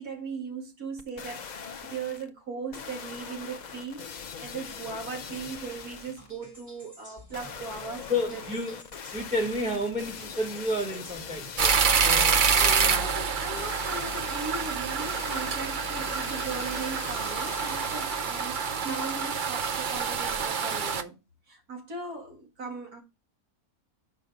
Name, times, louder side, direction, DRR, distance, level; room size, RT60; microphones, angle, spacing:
voice 1, 0.0-8.4 12.5-21.2 21.5-23.0, right 4 dB, 85° right, 2.7 m, -38 dB
sound 1, 1.0-2.3 2.7-6.3 7.3-12.3 13.6-18.5 19.0-19.1, left 6 dB, 85° left, 0.4 m, -42 dB
sound 2, 5.2-13.0, equal, 30° right, 3.1 m, -52 dB
voice 2, 8.1-8.8 9.1-13.1, left 1 dB, 5° right, 1.2 m, -31 dB
sound 3, 11.6-21.0, right 6 dB, 55° right, 0.5 m, -27 dB
6.4 x 5.3 x 4.9 m
omnidirectional pair, 1.6 m